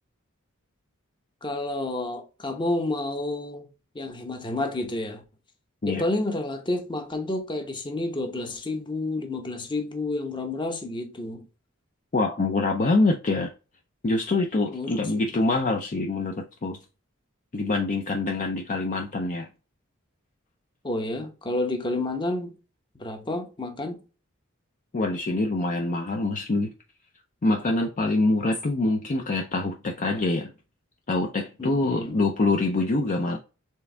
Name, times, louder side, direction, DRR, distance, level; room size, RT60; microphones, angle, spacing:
voice 1, 1.4-3.7 3.9-5.2 5.9-11.5 14.7-15.3 20.8-22.6 23.0-24.0 31.6-32.2, left 2 dB, 25° left, 0.9 m, -30 dB
voice 2, 12.1-13.5 14.0-16.8 17.5-19.5 24.9-26.7 27.4-30.5 31.1-33.4, left 2 dB, 40° left, 0.5 m, -25 dB
4.5 x 3.4 x 3.3 m
head